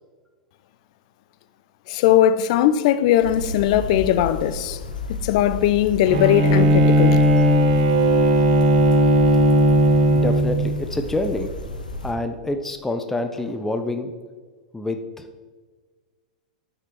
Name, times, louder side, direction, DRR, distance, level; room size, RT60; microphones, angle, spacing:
voice 1, 1.9-4.8 5.2-7.2, left 11 dB, 55° left, 0.5 m, -19 dB
sound 1, 3.2-12.1, left 1 dB, 90° left, 1.0 m, -32 dB
Bowed string instrument, 6.1-10.7, right 1 dB, 60° right, 1.4 m, -17 dB
voice 2, 10.1-11.5 12.0-14.1 14.7-15.4, left 2 dB, 10° left, 0.7 m, -27 dB
9.0 x 6.1 x 4.5 m
hypercardioid pair, 105°, 4 cm